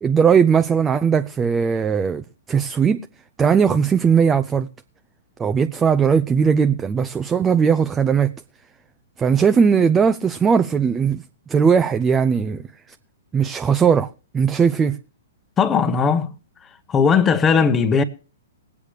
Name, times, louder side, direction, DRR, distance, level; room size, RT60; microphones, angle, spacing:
voice 1, 0.0-3.0 3.4-4.7 5.4-8.3 9.2-11.2 11.5-12.6 13.3-14.1 14.3-15.0, right 6 dB, 15° right, 0.6 m, -18 dB
voice 2, 15.6-16.3 16.9-18.0, left 6 dB, 20° left, 1.1 m, -17 dB
20.5 x 8.4 x 3.3 m
hypercardioid pair, 120°, 0 cm